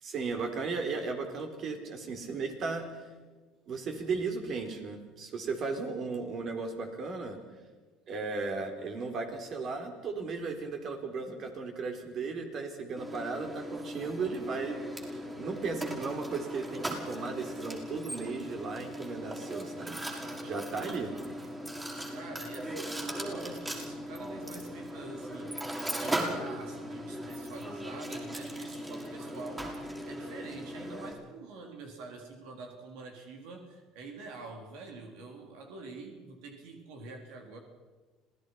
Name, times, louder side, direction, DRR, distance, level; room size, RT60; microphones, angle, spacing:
voice 1, 0.0-2.9 3.7-7.4 8.1-20.0 20.4-21.2, right 4 dB, 50° right, 5 dB, 4.2 m, -36 dB
Mechanisms, 13.0-31.1, equal, 15° right, 5.6 m, -38 dB
voice 2, 22.1-37.6, right 3 dB, 80° right, 3 dB, 3.9 m, -46 dB
26.5 x 18.0 x 5.8 m, 1.3 s
supercardioid pair, 100°, 0 cm